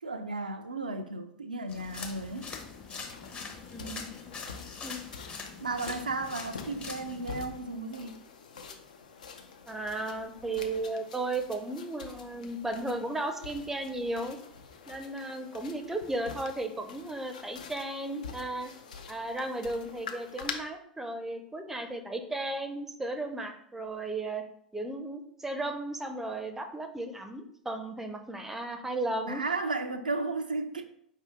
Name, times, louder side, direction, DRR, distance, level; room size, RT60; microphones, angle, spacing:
voice 1, 0.0-2.5 5.6-8.2 29.3-30.8, right 3 dB, 85° right, 6 dB, 0.3 m, -34 dB
sound 1, 1.7-7.3, left 4 dB, 25° left, 0.7 m, -43 dB
sound 2, 1.9-20.5, left 6 dB, 70° left, 0.5 m, -46 dB
voice 2, 3.7-4.1 4.8-5.0 9.7-14.4 14.9-18.7 19.1-24.4 24.7-29.4, right 2 dB, 10° right, 7 dB, 0.5 m, -35 dB
4.8 x 2.7 x 3.4 m, 0.69 s
figure-of-eight pair, 85°, 4 cm